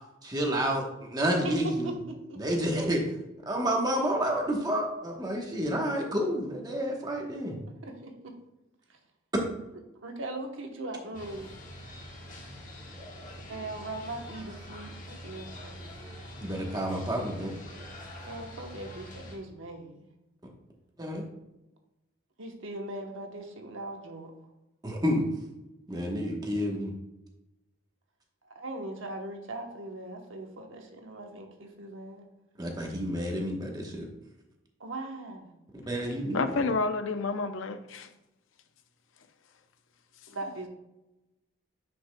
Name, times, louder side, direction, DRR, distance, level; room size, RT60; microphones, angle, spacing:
voice 1, 0.2-1.9 2.4-3.0 3.5-7.6 16.4-17.5 21.0-21.2 24.8-25.2 25.9-26.9 32.6-34.1 35.9-36.7, equal, 20° right, 1.0 m, -29 dB
voice 2, 1.4-2.4 7.8-8.3 8.9-9.0 10.0-11.5 13.3-16.2 18.2-20.0 22.4-24.3 28.4-32.3 34.8-35.5 40.3-40.7, right 2 dB, 70° right, 1.0 m, -40 dB
sound 1, 11.1-19.4, equal, 40° left, 1.5 m, -45 dB
voice 3, 36.3-38.1, left 3 dB, 70° left, 0.6 m, -29 dB
9.5 x 5.2 x 2.2 m
head